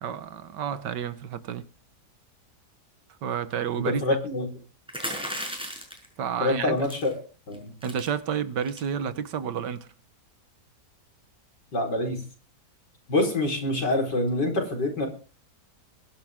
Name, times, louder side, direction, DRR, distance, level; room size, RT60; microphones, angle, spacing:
voice 1, 0.0-1.6 3.2-4.0 6.2-6.8 7.8-9.9, right 8 dB, 85° right, 1.7 m, -30 dB
voice 2, 3.7-4.5 6.4-7.1 7.5-7.7 11.7-12.2 13.1-15.1, left 2 dB, 85° left, 4.9 m, -26 dB
sound 1, 4.9-6.1 6.8-7.1 7.5-7.6 7.8-8.1 8.6-8.9, equal, 5° right, 5.6 m, -34 dB
22.5 x 11.0 x 3.6 m
omnidirectional pair, 1.8 m